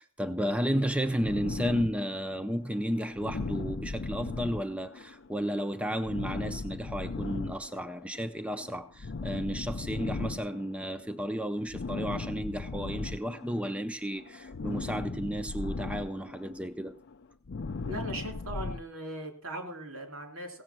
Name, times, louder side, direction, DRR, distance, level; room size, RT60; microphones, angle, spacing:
voice 1, 0.0-17.0, equal, 5° right, 0.5 m, -33 dB
sound 1, 1.2-13.8 14.1-18.8, left 3 dB, 55° left, 0.5 m, -38 dB
voice 2, 17.9-20.6, right 1 dB, 75° right, 3.2 m, -39 dB
16.5 x 7.6 x 6.0 m
head